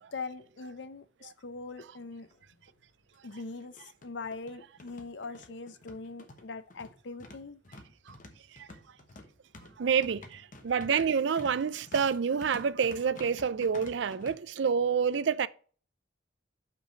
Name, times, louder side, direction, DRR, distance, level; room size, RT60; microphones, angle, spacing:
voice 1, 0.1-2.3 3.2-7.6, left 4 dB, 70° left, 0.6 m, -41 dB
sound 1, 2.3-2.4 2.7-2.8 3.6-14.3, left 2 dB, 45° left, 1.1 m, -50 dB
voice 2, 9.8-15.5, right 6 dB, 70° right, 0.4 m, -28 dB
5.8 x 5.0 x 6.5 m
head